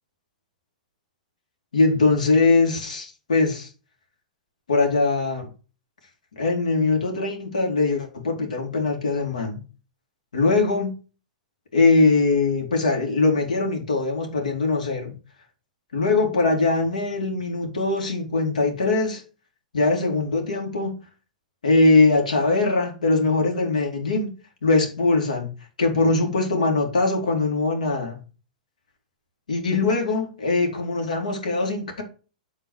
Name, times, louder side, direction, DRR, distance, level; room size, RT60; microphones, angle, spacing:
voice 1, 1.7-3.7 4.7-5.5 6.3-9.6 10.3-11.0 11.7-15.1 15.9-19.2 19.7-21.0 21.6-24.3 24.6-25.5 25.8-28.2 29.5-32.0, left 3 dB, 75° left, 2.5 m, -21 dB
8.3 x 3.9 x 6.3 m
figure-of-eight pair, 105°, 4 cm